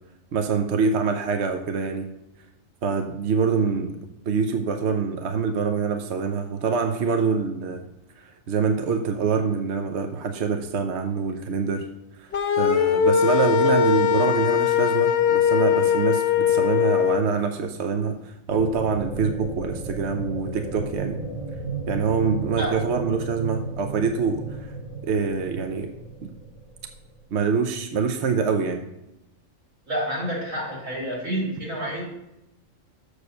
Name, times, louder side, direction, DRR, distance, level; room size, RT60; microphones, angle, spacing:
voice 1, 0.3-2.1 2.8-4.0 4.3-7.8 8.2-11.9 12.2-12.3 12.6-21.2 21.9-24.7 25.0-25.9 26.2-26.3 27.3-28.8, right 5 dB, 60° right, 6 dB, 1.0 m, -25 dB
sound 1, 12.3-17.2, left 8 dB, 60° left, 0.9 m, -20 dB
sound 2, 18.5-27.2, right 3 dB, 30° right, 1.1 m, -34 dB
voice 2, 29.9-32.0, right 1 dB, 85° right, -3 dB, 3.3 m, -28 dB
6.8 x 6.5 x 6.4 m, 0.88 s
omnidirectional pair, 1.4 m